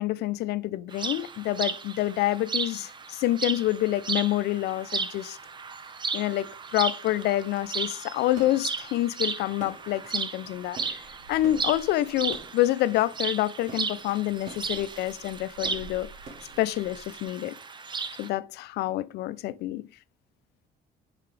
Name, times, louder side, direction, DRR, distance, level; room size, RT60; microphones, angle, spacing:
voice 1, 0.0-5.4 6.1-11.0 11.3-16.1 16.6-17.5 18.2-19.9, left 15 dB, 80° left, 0.5 m, -27 dB
sound 1, 0.9-18.3, right 5 dB, 25° right, 0.7 m, -35 dB
sound 2, 7.1-17.2, right 2 dB, 45° right, 2.1 m, -48 dB
5.7 x 5.7 x 3.2 m
cardioid pair, 110°, 17 cm